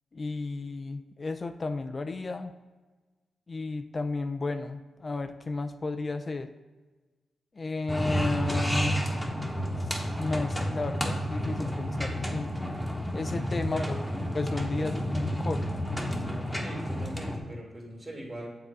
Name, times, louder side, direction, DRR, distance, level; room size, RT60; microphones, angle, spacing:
voice 1, 0.1-2.5 3.5-6.5 7.6-9.0 9.8-12.5 13.1-13.8 14.3-15.6, left 3 dB, 40° left, 8 dB, 0.4 m, -33 dB
sound 1, 7.9-17.4, equal, 10° left, 1.0 m, -31 dB
voice 2, 13.7-14.0 14.8-14.9 16.6-18.5, right 1 dB, 35° right, -1 dB, 2.2 m, -40 dB
7.3 x 3.8 x 4.6 m, 1.3 s
cardioid pair, 55°, 0 cm